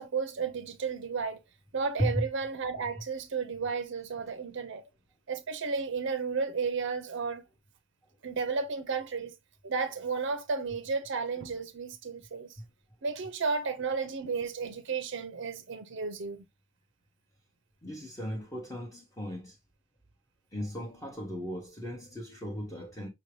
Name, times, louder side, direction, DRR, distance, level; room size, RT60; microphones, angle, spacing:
voice 1, 0.0-1.4 1.7-4.8 5.3-7.5 8.2-9.3 9.6-12.6 13.0-16.4, right 5 dB, 55° right, 0.5 m, -33 dB
voice 2, 17.8-19.6 20.5-23.1, equal, 15° left, 0.9 m, -35 dB
5.8 x 2.7 x 3.1 m
head